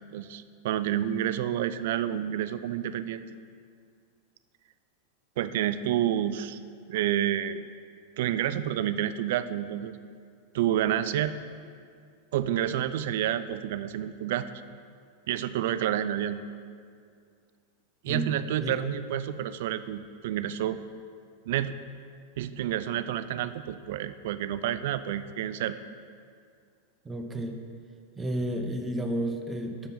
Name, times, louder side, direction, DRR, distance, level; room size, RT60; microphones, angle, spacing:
voice 1, 0.1-3.2 5.4-6.6 6.9-7.7 8.2-9.9 10.5-11.3 12.3-14.5 15.3-16.4 18.0-20.8 21.5-21.7 22.4-25.8, right 11 dB, 55° right, 13 dB, 0.3 m, -29 dB
voice 2, 27.0-27.6 28.2-29.9, right 1 dB, 15° right, 5 dB, 0.7 m, -31 dB
6.9 x 5.2 x 5.7 m, 2.2 s
figure-of-eight pair, 90°, 0 cm